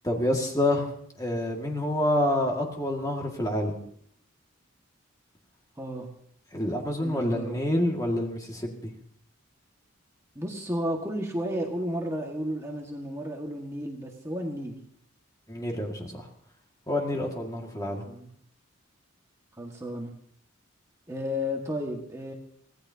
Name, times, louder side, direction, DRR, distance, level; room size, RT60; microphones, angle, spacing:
voice 1, 0.0-0.9 1.2-3.8 6.5-8.9 15.5-16.2 16.9-18.0, left 1 dB, 15° left, 1 dB, 2.0 m, -27 dB
voice 2, 5.8-6.1 7.0-7.6 10.4-14.8 18.1-18.3 19.6-20.1 21.1-22.3, equal, 15° right, 0 dB, 1.7 m, -33 dB
24.5 x 17.5 x 2.8 m, 0.64 s
head